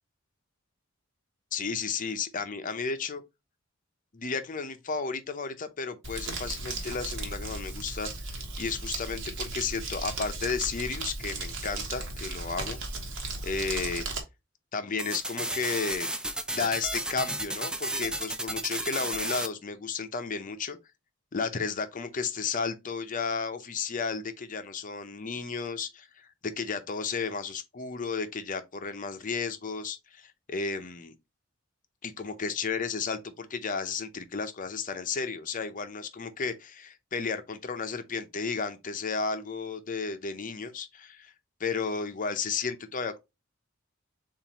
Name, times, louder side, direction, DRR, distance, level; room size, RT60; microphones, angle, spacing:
voice 1, 1.5-3.2 4.1-12.8 13.4-14.1 14.7-16.1 16.5-20.8 21.3-31.1 32.0-41.3 41.6-43.2, left 5 dB, 40° left, 0.6 m, -33 dB
Crumpling crinkling, 6.0-14.2, right 3 dB, 65° right, 1.3 m, -36 dB
sound 1, 15.0-19.5, right 1 dB, 5° right, 0.4 m, -33 dB
7.1 x 2.5 x 2.9 m
head